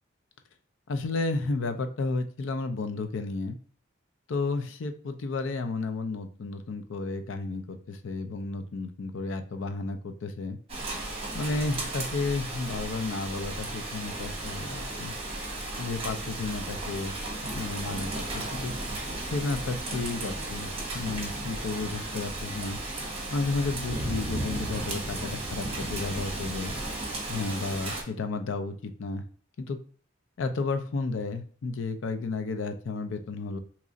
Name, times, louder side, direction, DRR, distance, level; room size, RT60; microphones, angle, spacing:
voice 1, 0.9-3.6 4.3-10.6 11.3-15.1 15.8-17.1 17.5-18.7 19.2-22.8 23.3-26.7 27.3-29.2 29.6-29.8 30.4-33.6, left 3 dB, 80° left, 8 dB, 0.5 m, -32 dB
Rain, 10.7-28.0, right 2 dB, 30° right, 0.9 m, -35 dB
sound 1, 10.8-26.9, equal, 25° left, 0.8 m, -46 dB
2.9 x 2.4 x 3.8 m, 0.43 s
head